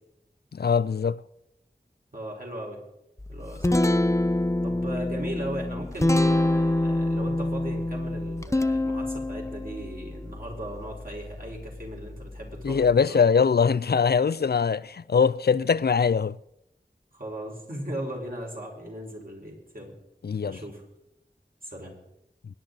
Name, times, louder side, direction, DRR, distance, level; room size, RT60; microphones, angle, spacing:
voice 1, 0.5-1.2 12.6-16.4 20.2-20.6, left 6 dB, 70° left, 0.4 m, -22 dB
voice 2, 2.1-2.8 3.3-3.8 4.6-13.2 17.1-19.9 20.4-20.8 21.6-21.9, right 1 dB, 55° right, 4.4 m, -37 dB
Guitar, 3.2-13.0, left 1 dB, 15° left, 0.6 m, -27 dB
23.0 x 10.5 x 4.0 m
wide cardioid pair, 45°, 17 cm